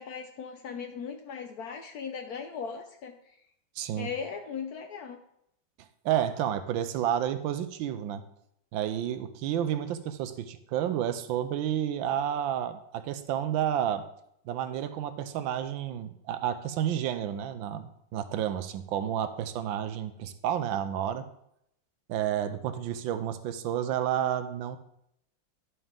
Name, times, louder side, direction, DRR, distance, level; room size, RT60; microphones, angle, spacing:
voice 1, 0.0-3.1 4.0-5.2, left 6 dB, 70° left, 5 dB, 0.9 m, -38 dB
voice 2, 3.8-4.1 6.0-8.2 8.7-14.0 14.5-21.3 22.1-24.8, right 10 dB, 80° right, 10 dB, 1.4 m, -30 dB
11.0 x 5.5 x 3.6 m, 0.76 s
omnidirectional pair, 2.1 m